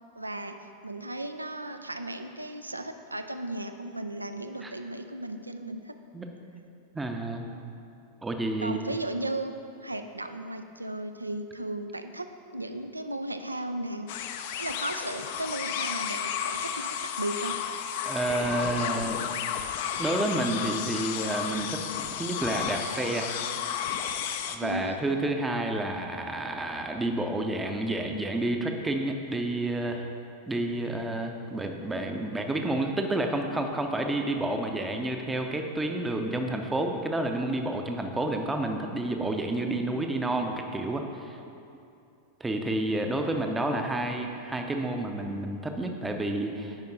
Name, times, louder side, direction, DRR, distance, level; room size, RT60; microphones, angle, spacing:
voice 1, 0.2-0.6 0.8-5.9 8.6-9.5 9.8-12.3 12.5-14.1 14.6-17.6 24.6-25.0, right 1 dB, 85° right, 8 dB, 0.4 m, -35 dB
voice 2, 6.9-7.5 8.2-8.9 18.1-19.3 20.0-23.3 24.5-30.1 30.5-41.4 42.4-46.8, right 1 dB, 10° right, 4 dB, 0.6 m, -30 dB
sound 1, 14.1-24.6, left 8 dB, 50° left, 0.4 m, -32 dB
8.9 x 5.3 x 3.9 m, 2.6 s
figure-of-eight pair, 90°, 0 cm